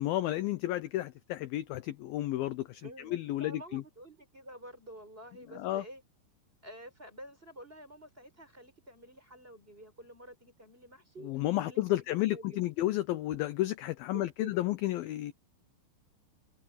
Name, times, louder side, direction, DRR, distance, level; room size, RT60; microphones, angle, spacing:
voice 1, 0.0-2.8 3.1-3.8 5.6-5.8 11.2-15.3, left 15 dB, 75° left, 2.3 m, -32 dB
voice 2, 2.8-6.0 6.6-12.7 14.1-14.5, right 1 dB, 10° right, 6.2 m, -50 dB
omnidirectional pair, 4.8 m